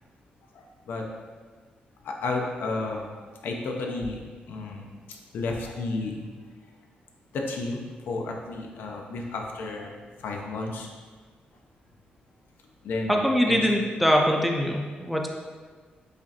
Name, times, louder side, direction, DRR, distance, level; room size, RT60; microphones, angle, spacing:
voice 1, 0.5-1.0 2.0-3.1 3.4-4.2 4.5-6.3 7.3-10.9 12.8-13.7, left 3 dB, 85° left, 1 dB, 0.5 m, -32 dB
voice 2, 13.1-15.3, equal, ahead, 1 dB, 0.3 m, -23 dB
5.0 x 2.5 x 2.7 m, 1.5 s
wide cardioid pair, 140°, 3 cm